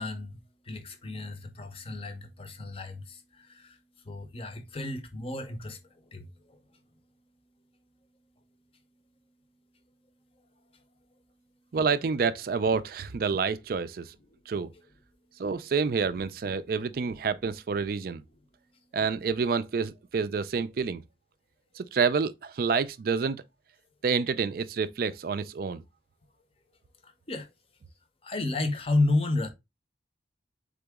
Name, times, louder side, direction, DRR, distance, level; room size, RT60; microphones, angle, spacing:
voice 1, 0.0-3.8 4.0-5.8 6.1-6.6 27.0-27.5 28.2-29.5, left 2 dB, 30° left, 0.7 m, -32 dB
voice 2, 11.7-14.2 14.5-14.7 15.4-18.2 18.9-21.0 21.8-23.4 24.0-25.8, right 5 dB, 55° right, 0.4 m, -28 dB
3.9 x 3.7 x 3.4 m
head